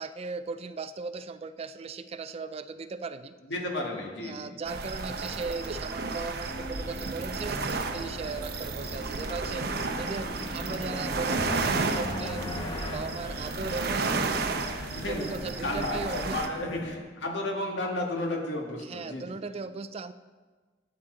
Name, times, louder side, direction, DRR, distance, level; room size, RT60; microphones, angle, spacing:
voice 1, 0.0-3.3 4.2-9.7 10.0-12.7 12.9-14.1 15.1-16.6 18.8-20.1, right 4 dB, 35° right, 12 dB, 0.4 m, -37 dB
voice 2, 3.4-4.5 14.9-19.4, left 1 dB, 80° left, 1 dB, 1.9 m, -33 dB
sound 1, 4.7-16.5, right 3 dB, 60° right, 0.8 m, -33 dB
sound 2, 6.4-17.0, left 1 dB, 60° left, 1.2 m, -42 dB
sound 3, 9.3-14.2, left 1 dB, 25° left, 1.4 m, -39 dB
12.5 x 8.7 x 3.9 m, 1.4 s
head